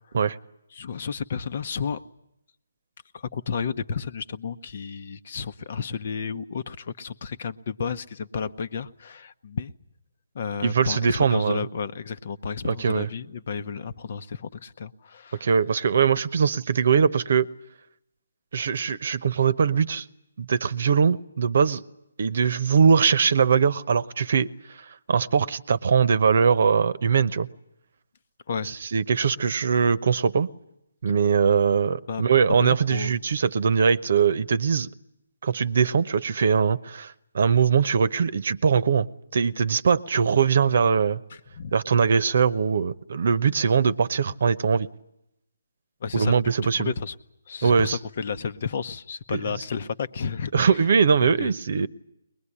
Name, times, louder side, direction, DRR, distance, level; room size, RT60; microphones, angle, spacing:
voice 1, 0.7-2.0 3.1-9.7 10.3-15.5 28.5-28.8 32.1-32.2 32.6-33.2 41.5-41.7 46.0-46.4 46.8-47.1 47.5-50.8 51.2-51.5, left 6 dB, 50° left, 1.0 m, -32 dB
voice 2, 10.6-11.6 12.7-13.1 15.4-17.5 18.5-20.0 20.4-21.8 22.2-24.5 25.1-27.5 28.6-30.5 31.0-34.9 35.4-39.1 39.3-41.2 41.7-44.9 46.1-46.9 47.6-48.0 49.3-49.4 50.5-51.9, right 6 dB, 55° right, 0.9 m, -21 dB
22.5 x 20.5 x 10.0 m
figure-of-eight pair, 150°, 0 cm